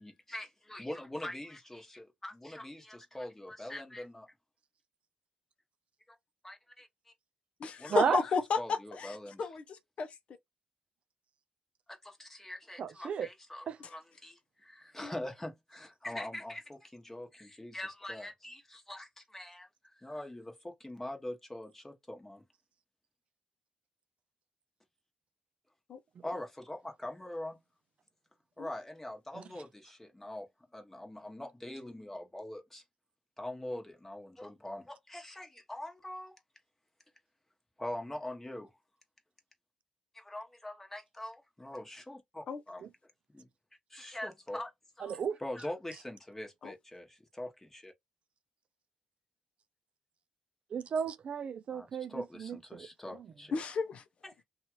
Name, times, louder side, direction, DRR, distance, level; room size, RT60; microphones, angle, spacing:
voice 1, 0.0-4.3 6.1-6.2 6.4-7.1 7.8-8.2 8.6-9.4 11.9-19.7 20.0-22.4 26.2-27.6 28.6-32.8 33.4-36.4 37.8-38.7 40.1-42.9 43.3-43.5 43.9-44.7 45.0-47.9 51.7-53.5 54.2-54.4, left 1 dB, 15° left, 1.1 m, -43 dB
voice 2, 7.6-10.2 13.8-13.9 15.0-15.1 25.9-26.0 28.6-28.7 42.5-42.6 46.6-46.7 53.5-54.0, left 5 dB, 60° left, 0.6 m, -33 dB
voice 3, 12.8-13.3 13.7-13.8 29.3-29.4 45.0-45.4 50.7-52.9, right 7 dB, 55° right, 0.4 m, -33 dB
2.7 x 2.4 x 3.0 m
cardioid pair, 70°, 2 cm